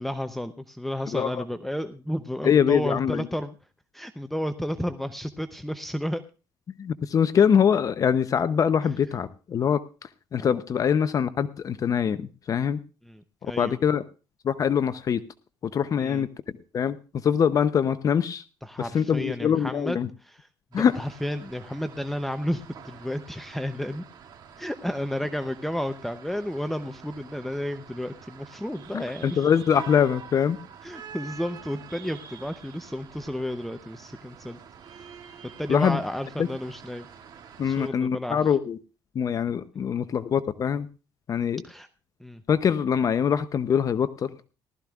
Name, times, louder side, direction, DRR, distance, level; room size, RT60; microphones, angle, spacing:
voice 1, 0.0-3.5 3.9-6.2 10.4-10.6 13.0-13.8 16.0-16.2 18.6-24.0 24.6-29.4 30.8-34.6 34.9-35.1 35.6-37.1 37.6-38.6 41.6-41.9 42.2-42.4, equal, ahead, 9 dB, 0.7 m, -32 dB
voice 2, 1.1-1.4 2.4-3.3 6.8-12.8 13.4-14.0 14.4-15.2 15.6-16.3 16.7-18.4 18.8-20.1 20.7-20.9 28.9-30.6 35.7-36.0 36.4-36.5 37.6-38.8 39.1-40.9 41.3-41.6 42.5-44.4, left 7 dB, 40° left, 13 dB, 0.7 m, -23 dB
sound 1, 20.7-37.9, right 7 dB, 50° right, 2.2 m, -47 dB
18.5 x 13.0 x 2.4 m, 0.33 s
cardioid pair, 115°, 9 cm